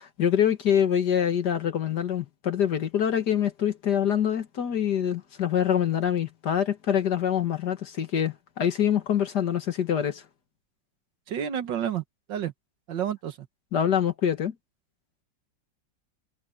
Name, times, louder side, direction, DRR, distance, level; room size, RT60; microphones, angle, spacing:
voice 1, 0.0-10.2 13.7-14.5, left 9 dB, 65° left, 2.0 m, -25 dB
voice 2, 11.3-12.0 12.3-12.5 12.9-13.4, right 9 dB, 75° right, 1.9 m, -29 dB
omnidirectional pair, 2.0 m